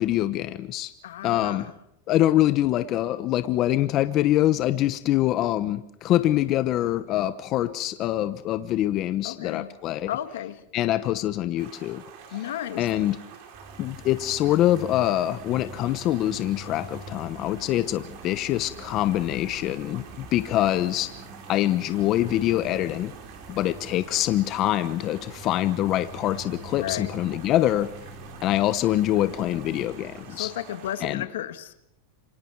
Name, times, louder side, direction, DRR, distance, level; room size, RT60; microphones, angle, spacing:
voice 1, 0.0-0.9 1.2-1.7 2.1-10.1 10.7-12.0 12.8-13.2 13.8-21.1 21.5-23.1 23.5-27.9 28.4-30.5 31.0-31.3, left 13 dB, 40° left, 1.0 m, -24 dB
voice 2, 1.0-1.7 9.2-9.8 10.1-10.6 12.3-12.9 26.7-27.1 30.3-31.7, left 11 dB, 85° left, 1.6 m, -33 dB
Stream, 11.6-31.1, right 7 dB, 60° right, 4.8 m, -47 dB
sound 1, 13.5-31.0, right 2 dB, 25° right, 4.2 m, -45 dB
27.5 x 24.5 x 4.8 m
supercardioid pair, 140°, 0 cm